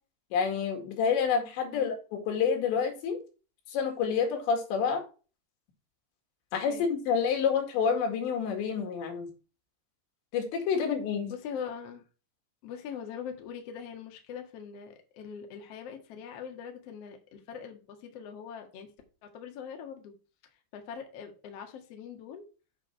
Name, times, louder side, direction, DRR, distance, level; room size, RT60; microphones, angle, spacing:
voice 1, 0.3-2.0 2.3-3.2 3.7-5.0 6.5-9.3 10.3-11.3, left 6 dB, 80° left, 4.3 m, -28 dB
voice 2, 11.3-12.0 12.6-18.9 19.2-20.1 20.7-22.4, left 7 dB, 55° left, 1.8 m, -42 dB
8.2 x 6.6 x 4.5 m
omnidirectional pair, 5.1 m